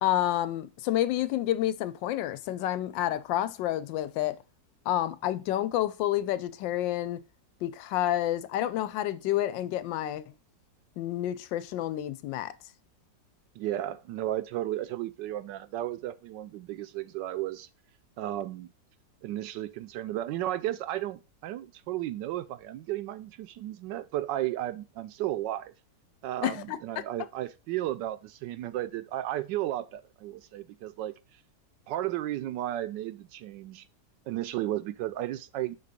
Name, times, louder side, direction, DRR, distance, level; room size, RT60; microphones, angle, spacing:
voice 1, 0.0-4.4 4.9-7.2 7.6-10.3 11.0-12.5 26.4-26.8, left 13 dB, 85° left, 1.3 m, -29 dB
voice 2, 13.6-17.7 18.2-18.7 19.2-25.7 26.2-31.1 31.9-33.8 34.3-35.8, right 14 dB, 80° right, 1.2 m, -34 dB
5.8 x 4.0 x 5.1 m
omnidirectional pair, 2.0 m